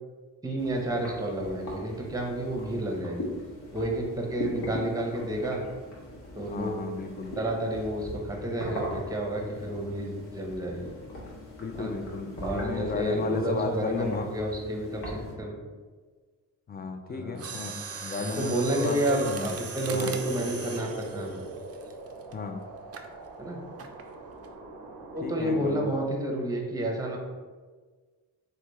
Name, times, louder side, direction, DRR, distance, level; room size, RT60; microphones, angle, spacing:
voice 1, 0.4-3.3 3.7-5.6 6.3-6.7 7.4-10.9 11.8-11.9 12.4-15.5 17.1-17.4 18.2-21.5 23.4-23.6 25.1-27.2, right 1 dB, 10° right, 0 dB, 0.8 m, -30 dB
sound 1, 0.6-15.4, left 1 dB, 65° left, 1.0 m, -40 dB
voice 2, 6.5-7.4 11.6-14.4 16.7-20.2 22.3-22.6 25.2-25.8, left 4 dB, 25° left, 6 dB, 0.4 m, -34 dB
Mechanisms, 17.3-22.3 22.9-23.1 23.8-24.1 24.4-24.5, right 5 dB, 40° right, 0.4 m, -39 dB
sound 2, 19.8-26.1, right 2 dB, 85° right, 0.6 m, -42 dB
3.3 x 2.3 x 3.0 m, 1.4 s
supercardioid pair, 45°, 42 cm